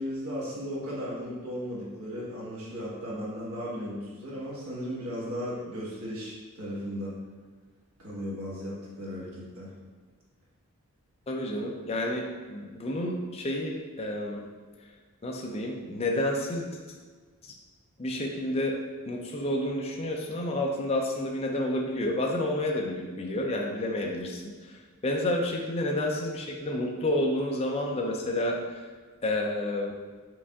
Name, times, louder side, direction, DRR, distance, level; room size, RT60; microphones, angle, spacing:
voice 1, 0.0-7.1 8.0-9.7, equal, 70° right, -6 dB, 1.3 m, -36 dB
voice 2, 11.3-14.4 15.2-16.8 17.4-17.5 18.0-18.7 19.1-28.6 29.2-29.9, left 1 dB, 25° left, 0 dB, 0.4 m, -30 dB
4.7 x 2.6 x 3.5 m, 1.5 s
head